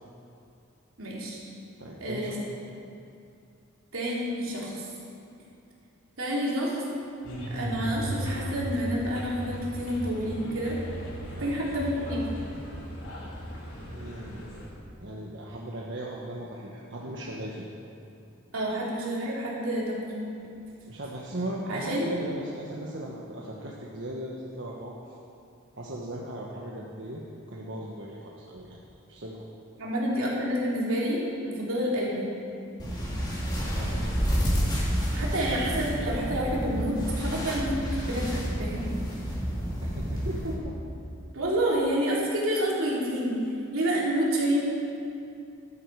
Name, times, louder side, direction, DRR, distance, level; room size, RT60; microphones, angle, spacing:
voice 1, 1.0-1.4 2.0-2.3 3.9-4.9 6.2-6.8 7.5-10.8 11.4-12.2 18.5-20.1 21.7-22.1 29.8-31.2 31.5-32.3 35.1-37.8 38.0-38.9 41.3-43.4 43.7-44.6, equal, 85° right, -5 dB, 3.4 m, -28 dB
voice 2, 1.8-2.4 11.3-11.6 13.8-14.4 15.0-17.6 20.9-24.9 25.8-27.2 27.5-28.8 29.1-29.4 33.6-34.1 39.8-40.7, right 1 dB, 60° right, -3 dB, 1.3 m, -37 dB
sound 1, 7.2-14.7, right 1 dB, 75° left, 3.8 m, -36 dB
sound 2, 32.8-40.5, equal, 20° left, 2.7 m, -29 dB
13.5 x 12.5 x 4.8 m, 2.6 s
head